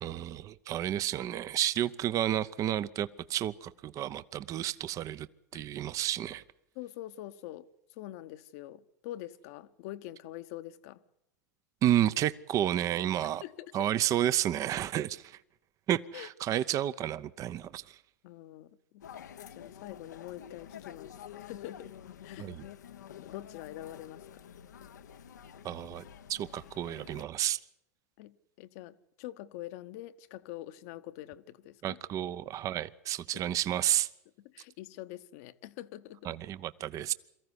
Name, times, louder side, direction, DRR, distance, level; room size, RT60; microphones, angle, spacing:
voice 1, 0.0-5.3 5.5-6.4 11.8-13.4 13.7-15.4 15.9-18.0 22.4-22.6 25.6-26.0 26.3-27.6 31.8-34.1 36.2-37.1, right 12 dB, 35° right, 0.7 m, -31 dB
voice 2, 6.7-7.6 8.0-11.0 13.4-13.9 16.1-16.3 18.2-19.0 19.5-21.9 22.2-22.7 23.2-24.2 28.2-32.0 33.3-33.4 34.4-36.3, left 14 dB, 60° left, 1.0 m, -45 dB
sound 1, 19.0-27.2, left 9 dB, 85° left, 0.9 m, -49 dB
23.0 x 14.5 x 9.7 m
hypercardioid pair, 105°, 9 cm